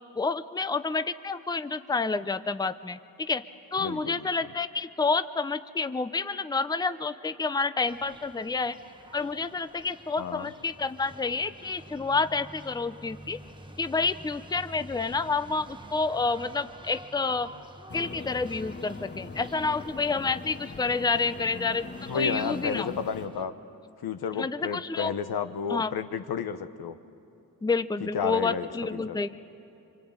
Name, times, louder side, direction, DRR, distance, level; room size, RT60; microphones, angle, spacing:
voice 1, 0.2-3.4 3.7-8.8 9.1-13.4 13.8-17.5 17.9-22.9 24.4-25.1 25.7-25.9 27.6-29.4, left 4 dB, 10° left, 0.6 m, -29 dB
voice 2, 3.8-4.5 10.2-10.5 22.1-23.5 24.0-27.0 28.0-29.2, left 6 dB, 85° left, 1.1 m, -32 dB
sound 1, 7.9-23.4, right 1 dB, 15° right, 1.1 m, -49 dB
sound 2, 17.9-23.3, left 3 dB, 30° left, 1.0 m, -41 dB
25.0 x 25.0 x 8.8 m
cardioid pair, 85°, 36 cm